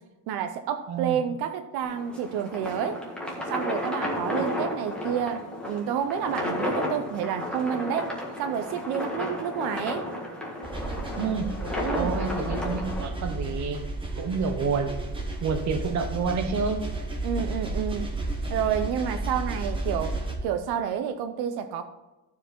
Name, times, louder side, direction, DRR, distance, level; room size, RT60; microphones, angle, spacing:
voice 1, 0.3-3.0 3.5-8.1 8.4-10.0 11.8-12.2 17.2-18.1 18.5-20.2 20.4-21.8, right 8 dB, 80° right, 8 dB, 0.8 m, -29 dB
voice 2, 0.9-1.2 11.2-11.6 11.9-13.8 14.1-14.9 15.4-16.9, right 5 dB, 45° right, 7 dB, 1.1 m, -28 dB
sound 1, 1.8-13.1, left 1 dB, 5° left, 1.6 m, -33 dB
sound 2, 10.6-20.4, right 2 dB, 15° right, 1.3 m, -32 dB
13.5 x 5.0 x 4.3 m, 1.1 s
cardioid pair, 165°, 38 cm